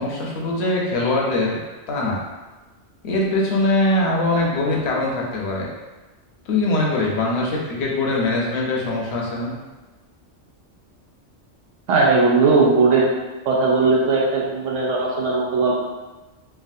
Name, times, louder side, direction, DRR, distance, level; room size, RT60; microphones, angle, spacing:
voice 1, 0.0-1.6 1.9-2.2 3.0-5.7 6.5-9.5, left 2 dB, 65° left, -3 dB, 0.9 m, -22 dB
voice 2, 11.9-13.1 13.4-15.8, right 3 dB, 90° right, -4 dB, 1.0 m, -18 dB
3.2 x 2.3 x 2.6 m, 1.2 s
omnidirectional pair, 1.2 m